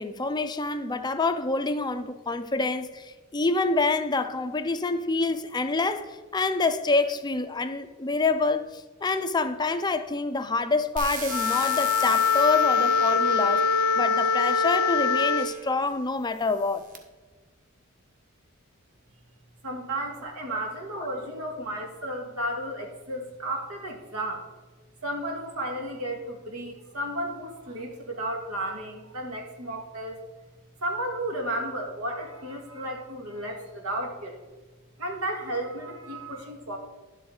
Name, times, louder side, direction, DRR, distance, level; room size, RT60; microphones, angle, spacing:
voice 1, 0.0-13.7 14.0-16.8 21.0-21.1, left 3 dB, 20° left, 0.4 m, -27 dB
sound 1, 11.0-15.7 16.4-17.0, right 3 dB, 40° right, 1.2 m, -38 dB
Wind instrument woodwind instrument, 11.3-15.6, left 5 dB, 75° left, 0.5 m, -23 dB
voice 2, 19.6-24.5 25.0-30.2 30.8-34.4 35.0-36.8, right 1 dB, 80° right, 1.8 m, -33 dB
11.0 x 7.8 x 3.8 m
head